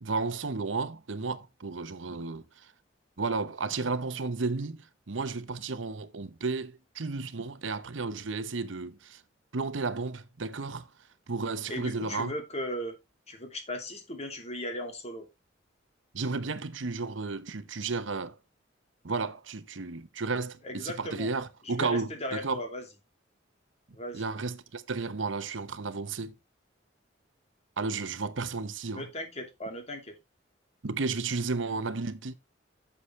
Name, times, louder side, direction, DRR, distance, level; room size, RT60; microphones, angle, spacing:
voice 1, 0.0-2.4 3.2-9.2 9.5-10.9 11.3-12.3 16.1-18.4 19.0-22.6 24.1-26.3 27.8-29.1 30.8-32.3, right 4 dB, 90° right, 0.9 m, -33 dB
voice 2, 11.7-13.0 13.3-15.3 20.6-21.3 21.6-22.8 23.9-24.2 28.9-30.2, left 1 dB, 35° left, 2.5 m, -37 dB
9.8 x 7.2 x 3.1 m
head